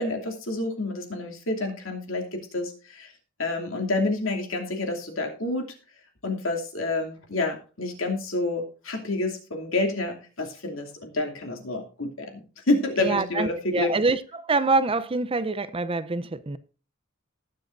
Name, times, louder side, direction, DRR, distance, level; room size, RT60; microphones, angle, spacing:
voice 1, 0.0-3.1 3.4-5.7 6.2-13.9, left 2 dB, 70° left, 2.8 m, -28 dB
voice 2, 13.0-16.6, right 3 dB, 25° right, 0.6 m, -25 dB
19.0 x 7.6 x 2.6 m
head